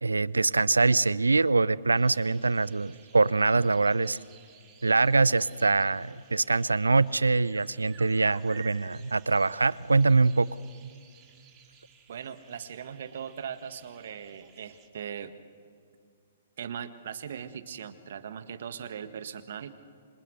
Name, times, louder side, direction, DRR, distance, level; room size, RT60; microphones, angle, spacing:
voice 1, 0.0-4.2 4.8-10.5, right 3 dB, 80° right, 21 dB, 0.6 m, -24 dB
sound 1, 1.9-14.9, right 7 dB, 25° right, 3.7 m, -55 dB
voice 2, 12.1-15.3 16.6-19.7, right 8 dB, 55° right, 11 dB, 1.7 m, -39 dB
27.0 x 26.0 x 8.0 m, 2.3 s
figure-of-eight pair, 120°, 0 cm